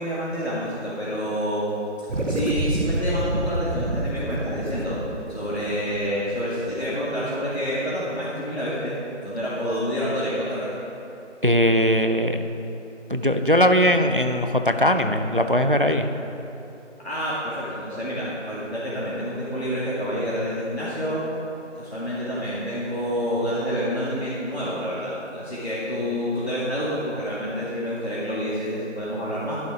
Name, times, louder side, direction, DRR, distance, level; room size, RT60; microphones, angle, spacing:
voice 1, 0.0-1.7 2.3-5.0 5.3-10.7 17.0-21.2 21.8-29.6, equal, 60° left, -9 dB, 2.3 m, -28 dB
sound 1, 2.1-6.8, right 1 dB, 80° right, 1.2 m, -28 dB
voice 2, 11.4-12.4 13.1-16.1, equal, 45° right, 7 dB, 0.5 m, -20 dB
11.0 x 6.8 x 5.0 m, 2.9 s
figure-of-eight pair, 175°, 36 cm